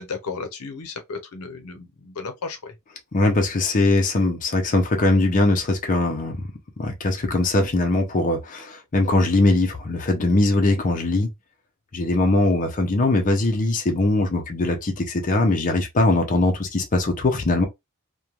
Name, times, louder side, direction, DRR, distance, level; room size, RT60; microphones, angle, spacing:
voice 1, 0.0-2.7, left 4 dB, 80° left, 0.6 m, -34 dB
voice 2, 3.1-6.4 6.8-11.3 11.9-17.7, left 2 dB, 35° left, 0.5 m, -21 dB
3.0 x 2.2 x 2.3 m
head